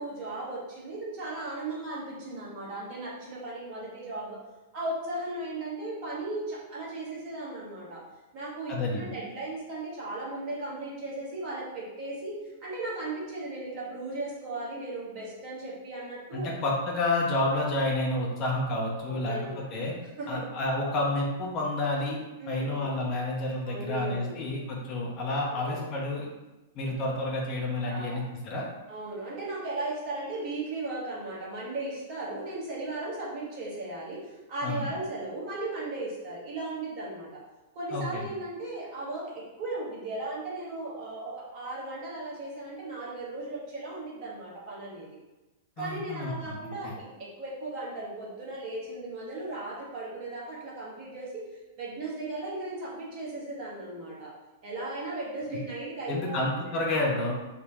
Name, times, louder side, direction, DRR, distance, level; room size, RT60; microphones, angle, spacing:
voice 1, 0.0-4.4 4.7-8.0 8.3-16.5 19.0-19.5 20.2-20.5 22.4-23.0 23.7-24.4 25.5-25.8 27.9-28.2 28.9-34.2 34.5-37.4 37.7-45.1 45.8-51.4 51.8-54.3 54.6-56.7, right 2 dB, 40° right, -5 dB, 1.1 m, -36 dB
voice 2, 8.7-9.1 16.3-19.9 20.3-22.2 22.5-26.3 26.7-28.7 34.6-34.9 37.9-38.3 45.8-46.9 56.1-57.3, left 2 dB, 35° left, -2 dB, 0.6 m, -30 dB
3.6 x 2.1 x 2.6 m, 1.1 s
figure-of-eight pair, 100°, 0 cm